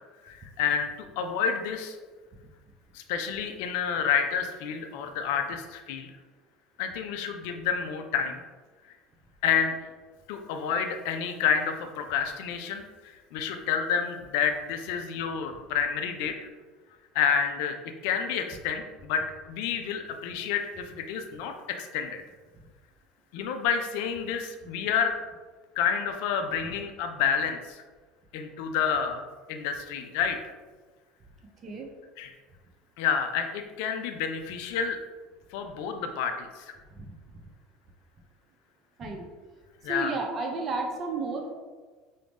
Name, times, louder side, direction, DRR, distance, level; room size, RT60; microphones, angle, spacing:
voice 1, 0.2-2.0 2.9-6.1 6.8-8.4 9.4-9.7 10.3-16.3 17.1-17.8 18.0-22.2 23.3-25.1 25.8-27.8 28.3-29.2 29.5-30.4 32.2-32.3 33.0-35.0 35.5-36.7 39.8-40.1, left 7 dB, 65° left, 6 dB, 0.3 m, -29 dB
voice 2, 39.8-41.5, right 3 dB, 35° right, 1 dB, 0.5 m, -32 dB
4.7 x 2.0 x 3.4 m, 1.4 s
hypercardioid pair, 70°, 0 cm